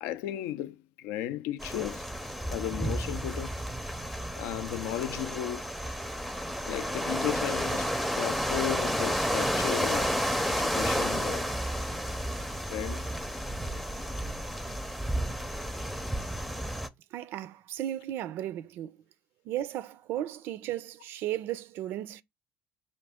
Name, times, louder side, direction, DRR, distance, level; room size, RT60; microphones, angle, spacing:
voice 1, 0.0-2.1 2.5-3.6 4.4-5.7 6.7-10.2 10.5-11.5 12.7-13.1, left 12 dB, 85° left, 0.3 m, -35 dB
sound 1, 1.6-16.9, equal, ahead, 0.5 m, -31 dB
voice 2, 17.1-19.0 19.5-22.2, right 12 dB, 70° right, 0.4 m, -35 dB
5.1 x 2.6 x 3.5 m
cardioid pair, 105°, 4 cm